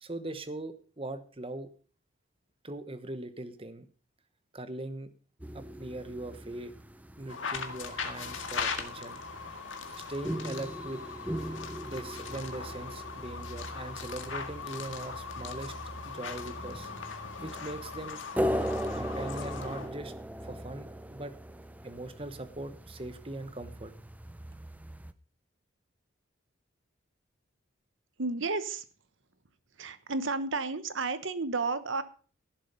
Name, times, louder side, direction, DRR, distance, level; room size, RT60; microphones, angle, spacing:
voice 1, 0.0-1.7 2.6-3.9 4.5-5.1 5.5-6.7 7.2-9.2 9.5-9.6 10.1-11.0 11.8-15.7 16.1-16.9 17.4-18.2 18.9-20.1 20.4-21.3 21.8-23.9, right 2 dB, 25° right, 11 dB, 1.0 m, -40 dB
sound 1, 5.4-25.1, equal, 5° right, 0.5 m, -39 dB
sound 2, 7.3-19.9, left 5 dB, 70° left, 1.9 m, -39 dB
voice 2, 28.2-28.8 29.8-32.0, right 3 dB, 70° right, 13 dB, 1.1 m, -32 dB
16.0 x 7.4 x 5.3 m, 0.41 s
head